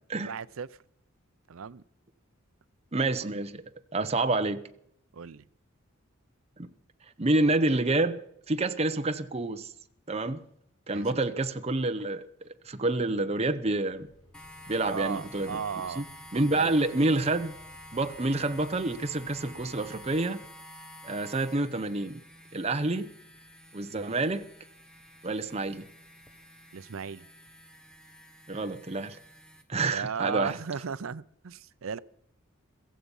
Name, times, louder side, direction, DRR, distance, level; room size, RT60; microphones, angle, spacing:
voice 1, 0.2-0.7 1.5-1.8 5.1-5.5 10.9-11.1 14.9-16.0 16.5-16.7 26.7-27.3 29.8-32.0, right 6 dB, 75° right, 0.5 m, -35 dB
voice 2, 2.9-3.6 3.9-4.6 6.6-6.7 7.2-8.2 8.5-9.7 10.1-10.4 10.9-12.2 12.7-14.1 14.7-15.6 15.9-16.0 16.3-17.6 17.9-20.4 21.0-22.2 22.5-23.1 23.7-24.5 25.2-25.8 28.5-29.2 29.7-30.6, right 2 dB, 30° right, 0.8 m, -28 dB
sound 1, 13.9-20.1, equal, 60° left, 6.4 m, -58 dB
sound 2, 14.3-29.6, left 1 dB, 5° left, 1.1 m, -50 dB
15.5 x 15.0 x 5.5 m
head